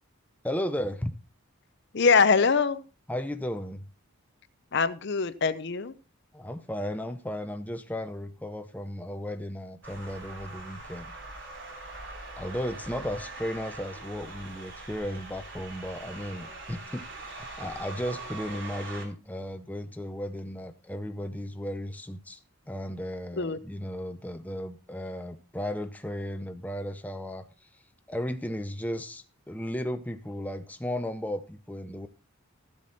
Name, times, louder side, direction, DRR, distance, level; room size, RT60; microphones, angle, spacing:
voice 1, 0.4-1.1 3.1-3.9 6.3-11.0 12.4-22.4 22.7-27.5 28.1-32.1, equal, 5° left, 0.6 m, -35 dB
voice 2, 1.9-2.8 4.7-5.9 23.4-23.6, left 5 dB, 55° left, 0.6 m, -23 dB
sound 1, 9.8-19.1, right 2 dB, 55° right, 3.5 m, -42 dB
13.5 x 7.5 x 4.1 m
head